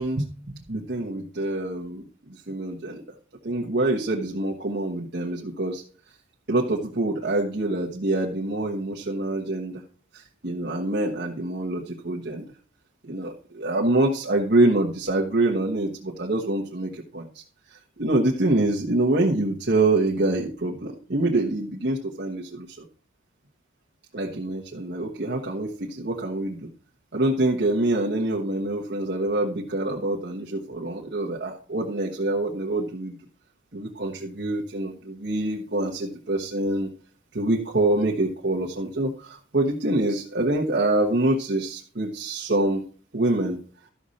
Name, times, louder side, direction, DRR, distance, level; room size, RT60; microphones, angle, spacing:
voice 1, 0.0-3.0 3.4-5.8 6.5-9.8 10.1-12.5 13.0-17.4 17.7-22.8 24.1-26.7 27.1-33.1 33.7-36.9 37.3-42.8 43.1-43.6, right 2 dB, 55° right, -3 dB, 1.2 m, -25 dB
12.5 x 6.5 x 4.2 m, 0.42 s
head